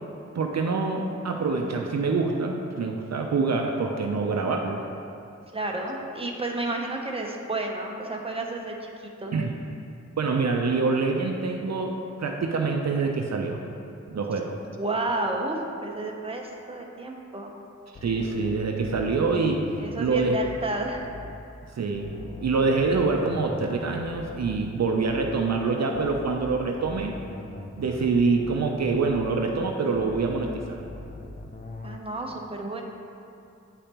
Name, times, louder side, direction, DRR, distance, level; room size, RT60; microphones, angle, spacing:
voice 1, 0.3-4.8 9.3-9.5 10.2-13.6 14.1-14.5 18.0-19.6 20.0-20.4 21.8-22.2 22.4-27.2 27.7-30.8, right 4 dB, 65° right, 2 dB, 0.6 m, -25 dB
voice 2, 5.5-8.9 9.2-9.3 14.8-17.6 19.8-21.1 31.8-32.8, right 2 dB, 20° right, 0 dB, 0.8 m, -31 dB
sound 1, 17.9-21.5 21.9-25.5 25.9-29.5 29.9-32.0, left 2 dB, 30° left, 0.5 m, -41 dB
8.9 x 5.0 x 2.9 m, 2.6 s
wide cardioid pair, 70°, 29 cm